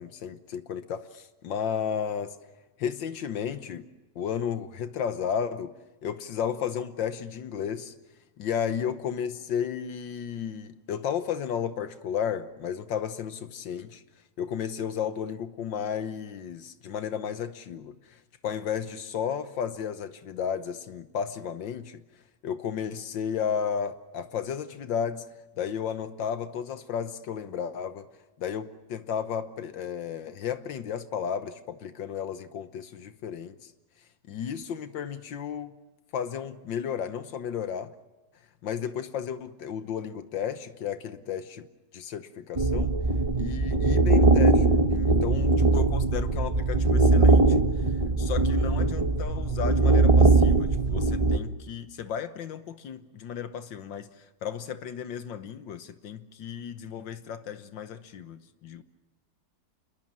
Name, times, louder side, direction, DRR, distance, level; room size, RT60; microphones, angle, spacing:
voice 1, 0.0-2.4 2.8-3.9 4.2-5.7 6.0-7.9 8.4-14.0 14.4-18.2 18.4-22.0 22.4-25.2 25.6-28.1 28.4-33.6 34.3-35.7 36.1-37.9 38.6-41.7 41.9-42.9 43.4-47.6 48.2-54.1 54.4-58.8, left 8 dB, 75° left, 11 dB, 1.7 m, -33 dB
sound 1, 42.6-51.4, right 3 dB, 25° right, 0.9 m, -21 dB
28.0 x 21.5 x 7.4 m, 1.1 s
omnidirectional pair, 2.0 m